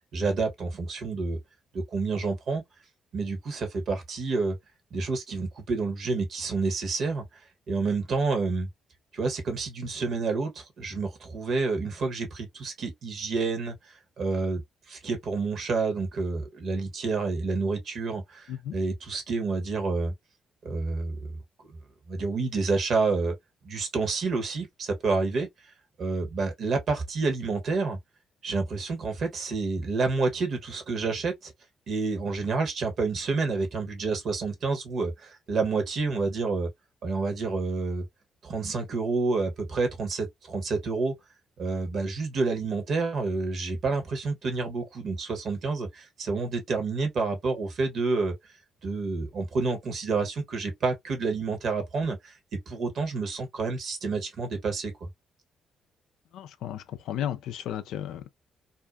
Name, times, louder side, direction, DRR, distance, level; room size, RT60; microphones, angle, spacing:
voice 1, 0.1-1.4 1.7-2.6 3.1-4.6 4.9-7.2 7.7-8.7 9.1-13.7 14.2-20.1 20.6-21.4 21.7-21.8 22.1-23.3 23.6-25.5 26.0-28.0 28.4-31.5 31.9-36.7 37.0-38.0 38.4-41.1 41.6-48.3 48.8-55.1, right 4 dB, 60° right, 1.0 m, -29 dB
voice 2, 56.3-58.3, left 10 dB, 75° left, 0.3 m, -34 dB
2.6 x 2.2 x 2.2 m
hypercardioid pair, 50°, 0 cm